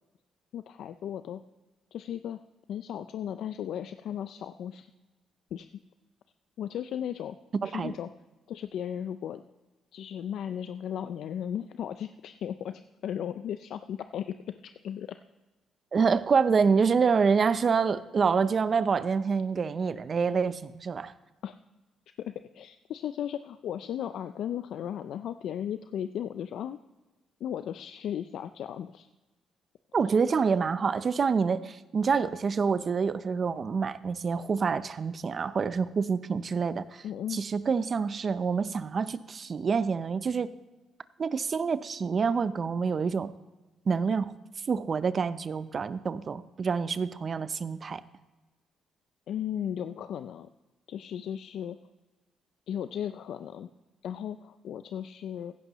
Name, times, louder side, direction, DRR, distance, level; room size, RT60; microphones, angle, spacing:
voice 1, 0.5-1.4 1.9-2.4 2.7-4.9 5.5-5.7 6.6-7.4 7.6-8.1 8.5-9.4 9.9-15.2 21.4-21.6 22.2-26.8 27.4-29.1 37.0-37.4 49.3-50.5 50.9-51.8 52.7-53.7 54.0-55.5, left 9 dB, 75° left, 10 dB, 0.4 m, -36 dB
voice 2, 7.6-7.9 15.9-21.1 29.9-37.0 37.3-40.5 41.2-43.3 43.9-44.3 44.7-48.0, right 5 dB, 45° right, 15 dB, 0.6 m, -27 dB
15.5 x 11.0 x 3.0 m, 1.2 s
cardioid pair, 90°, 0 cm